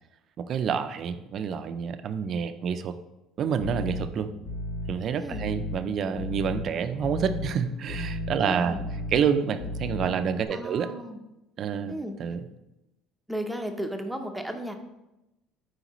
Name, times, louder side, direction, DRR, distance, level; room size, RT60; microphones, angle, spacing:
voice 1, 0.4-3.0 3.4-4.3 4.9-8.8 9.1-10.9 11.6-11.9 12.2-12.5, right 7 dB, 50° right, 10 dB, 0.5 m, -28 dB
sound 1, 3.6-10.5, left 2 dB, 75° left, 1.3 m, -35 dB
voice 2, 5.1-5.5 8.4-8.9 10.5-11.2 11.9-12.1 13.3-14.8, equal, 5° right, 4 dB, 0.8 m, -34 dB
8.0 x 4.9 x 3.1 m, 0.95 s
supercardioid pair, 95°, 0 cm